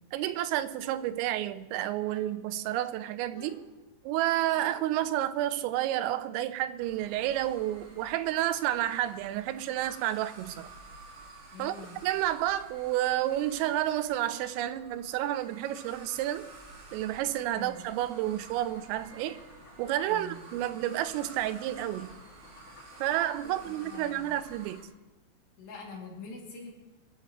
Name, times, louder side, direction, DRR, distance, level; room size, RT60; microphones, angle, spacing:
voice 1, 0.1-3.6 4.0-10.7 11.6-11.7 12.0-16.5 16.9-19.4 19.8-22.1 23.0-24.9, right 13 dB, 90° right, 13 dB, 3.3 m, -30 dB
sound 1, 0.7-1.6 2.0-2.6 3.3-5.1, right 1 dB, 25° right, 1.8 m, -54 dB
sound 2, 6.8-24.8, right 3 dB, 55° right, 3.8 m, -51 dB
voice 2, 11.5-12.0 17.5-17.8 20.1-20.4 23.4-24.3 25.6-26.7, left 3 dB, 60° left, -2 dB, 4.6 m, -45 dB
sound 3, 18.3-24.4, left 3 dB, 80° left, 5.1 m, -56 dB
26.0 x 14.0 x 3.2 m, 1.1 s
omnidirectional pair, 5.8 m